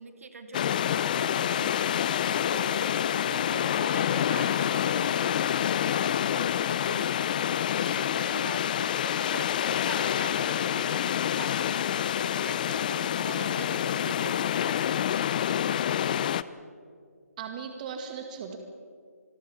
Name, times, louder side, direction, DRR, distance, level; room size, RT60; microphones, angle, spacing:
voice 1, 0.0-14.9, right 3 dB, 60° right, 7 dB, 2.7 m, -44 dB
sound 1, 0.5-16.4, left 10 dB, 30° left, 0.6 m, -27 dB
voice 2, 17.4-18.6, right 6 dB, 30° right, 5 dB, 2.1 m, -37 dB
27.5 x 20.5 x 7.2 m, 2.2 s
figure-of-eight pair, 155°, 9 cm